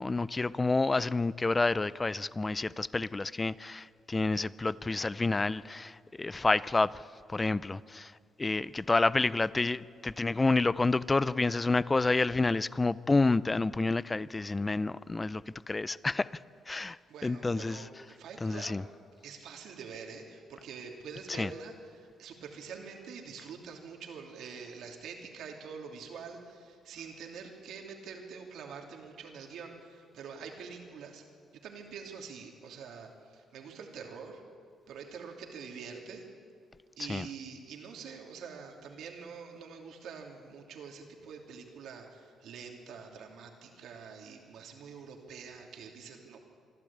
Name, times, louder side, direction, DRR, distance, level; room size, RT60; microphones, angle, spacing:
voice 1, 0.0-8.1 8.4-16.4 16.7-17.9 18.4-18.8 21.4-21.5 37.0-37.3, left 3 dB, 20° left, 19 dB, 0.5 m, -29 dB
voice 2, 16.8-18.7 19.2-31.3 31.6-34.4 34.9-36.2 37.0-46.4, right 6 dB, 75° right, 2 dB, 2.9 m, -45 dB
25.5 x 12.0 x 8.7 m, 2.2 s
cardioid pair, 90°, 0 cm